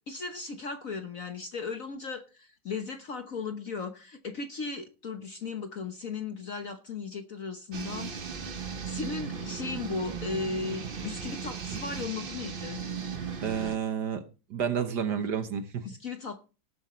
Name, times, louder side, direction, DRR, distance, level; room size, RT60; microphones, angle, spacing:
voice 1, 0.1-12.8 15.8-16.6, left 4 dB, 50° left, 1.1 m, -37 dB
sound 1, 7.7-13.8, right 6 dB, 40° right, 0.8 m, -37 dB
voice 2, 13.4-14.2 14.5-15.9, right 7 dB, 55° right, 1.5 m, -30 dB
19.0 x 7.9 x 3.1 m
omnidirectional pair, 2.4 m